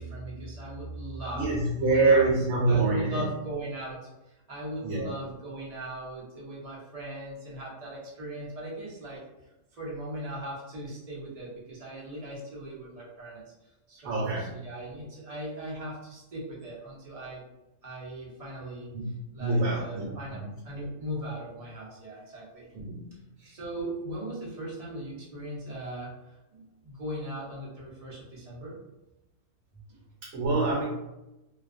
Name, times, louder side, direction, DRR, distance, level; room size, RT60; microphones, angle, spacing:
voice 1, 0.0-2.3 2.7-9.2 9.7-17.4 17.8-22.7 23.1-23.2 23.4-28.8 29.7-30.0, right 1 dB, 45° right, -5 dB, 0.5 m, -39 dB
voice 2, 1.3-3.2 4.8-5.1 14.0-14.5 18.9-19.1 19.4-20.5 22.7-23.5 30.2-30.8, right 3 dB, 75° right, -3 dB, 1.0 m, -26 dB
2.4 x 2.2 x 2.4 m, 0.97 s
omnidirectional pair, 1.5 m